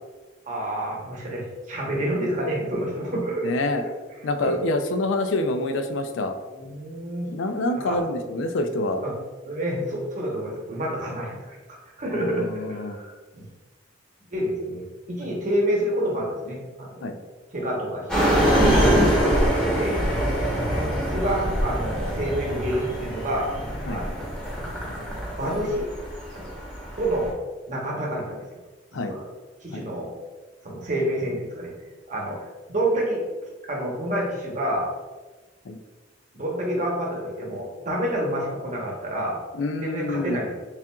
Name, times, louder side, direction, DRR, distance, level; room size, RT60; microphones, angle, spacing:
voice 1, 0.5-3.5 3.8-3.9 4.4-4.5 6.5-7.3 7.8-8.0 9.0-9.1 9.4-11.5 12.0-13.4 14.3-17.1 17.5-18.3 19.7-20.7 21.1-23.5 23.9-24.4 25.4-25.9 26.3-26.5 27.0-27.4 27.7-28.4 28.9-29.2 29.6-30.1 30.6-31.7 32.1-33.2 33.7-34.9 36.3-39.4 39.8-40.5, right 1 dB, 40° right, -3 dB, 0.9 m, -28 dB
voice 2, 3.4-3.8 4.2-6.4 7.3-9.0 12.1-13.0 17.0-17.1 18.9-19.0 23.9-24.0 28.9-29.2 29.7-29.8 35.7-35.8 39.5-40.4, left 2 dB, 90° left, 7 dB, 0.4 m, -27 dB
sound 1, 18.1-27.3, equal, 5° left, 1.0 m, -24 dB
5.5 x 2.5 x 2.3 m, 1.2 s
head